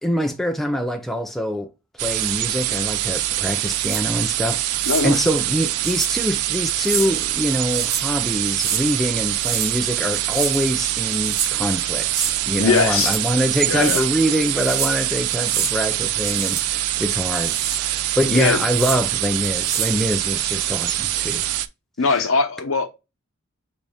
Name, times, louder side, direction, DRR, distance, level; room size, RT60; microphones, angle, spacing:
voice 1, 0.0-1.7 2.0-21.4 22.0-22.3, equal, ahead, 0.3 m, -24 dB
sound 1, 2.0-21.7, right 15 dB, 85° right, 0.3 m, -24 dB
sound 2, 3.5-4.0 4.7-5.1 5.8-6.1 6.7-7.1 7.5-8.1 8.5-8.8 9.3-9.8 10.1-10.6 11.1-11.5 12.0-12.4 12.8-13.3 13.6-14.1 14.5-15.0 15.3-15.7 16.1-16.7 17.1-17.8 18.6-19.0 19.4-20.0, right 7 dB, 70° right, 0.9 m, -28 dB
voice 2, 4.9-5.2 12.6-13.2 13.7-14.0 18.3-18.6 22.0-22.9, left 4 dB, 65° left, 0.8 m, -20 dB
6.9 x 3.0 x 2.3 m
head